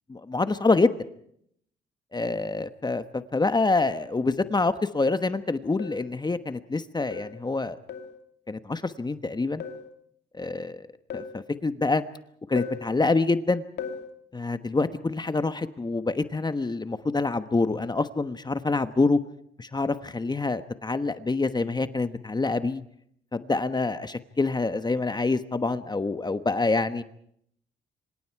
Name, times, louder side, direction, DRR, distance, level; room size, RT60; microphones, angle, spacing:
voice 1, 0.1-1.0 2.1-7.8 8.5-9.6 10.3-10.9 11.1-12.0 12.5-13.6 14.3-19.2 19.6-22.8 23.3-27.0, left 3 dB, 20° left, 11 dB, 1.2 m, -26 dB
sound 1, 5.1-5.4 5.8-6.1 7.1-7.4 7.9-8.2 9.6-9.9 11.1-11.4 12.6-12.9 13.8-14.1, left 6 dB, 60° left, 2.6 m, -37 dB
26.5 x 26.0 x 4.7 m, 0.68 s
cardioid pair, 90°, 20 cm